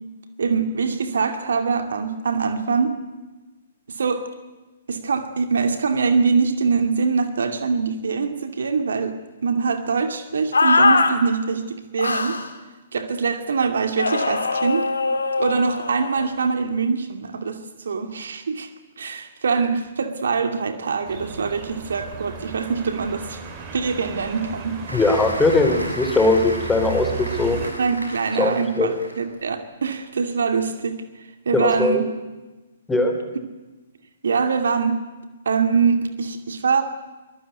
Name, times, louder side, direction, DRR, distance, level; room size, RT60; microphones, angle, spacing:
voice 1, 0.4-3.0 3.9-4.3 4.9-9.2 9.4-12.4 12.9-14.9 15.4-18.7 19.0-23.4 23.7-24.8 27.8-31.0 31.5-32.0 34.2-35.0 35.5-36.8, right 5 dB, 65° right, 8 dB, 2.5 m, -23 dB
sound 1, 10.5-11.1 12.0-12.5 14.0-16.3, left 3 dB, 75° left, 2.9 m, -21 dB
sound 2, 21.0-27.7, right 5 dB, 35° right, 4.7 m, -35 dB
voice 2, 24.9-27.6 28.4-28.9 31.5-32.0 32.9-33.1, left 2 dB, 10° left, 5 dB, 3.8 m, -20 dB
Applause, 24.9-29.3 29.8-30.0, right 1 dB, 85° right, 6.3 m, -35 dB
24.0 x 19.5 x 9.4 m, 1.1 s
figure-of-eight pair, 120°, 0 cm